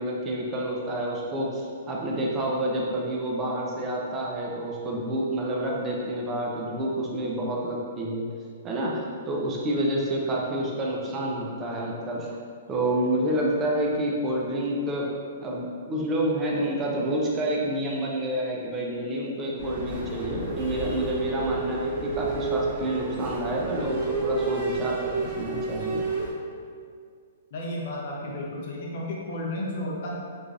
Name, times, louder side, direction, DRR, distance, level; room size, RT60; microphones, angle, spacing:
voice 1, 0.0-8.2 8.6-12.3 12.7-15.1 15.4-26.0, right 1 dB, 15° right, -3 dB, 0.3 m, -28 dB
sound 1, 19.6-26.3, right 3 dB, 50° right, 0.7 m, -30 dB
voice 2, 27.5-30.1, left 1 dB, 45° left, -3 dB, 0.5 m, -32 dB
3.1 x 2.4 x 2.4 m, 2.1 s
hypercardioid pair, 170°, 0 cm